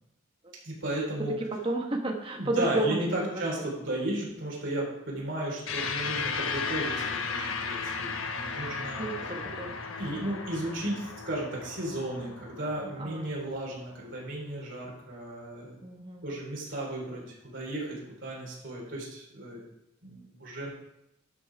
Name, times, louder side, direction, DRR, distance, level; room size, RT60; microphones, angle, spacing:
voice 1, 0.6-1.4 2.3-9.0 10.0-15.8 16.2-19.6 20.0-20.7, right 1 dB, 65° right, -4 dB, 3.5 m, -34 dB
voice 2, 1.6-3.3 3.6-3.7 9.0-9.8 13.0-13.3 15.8-16.2, right 2 dB, 25° right, 2 dB, 1.2 m, -31 dB
sound 1, 5.7-14.3, left 5 dB, 85° left, 1.0 m, -35 dB
12.0 x 5.5 x 4.6 m, 0.83 s
head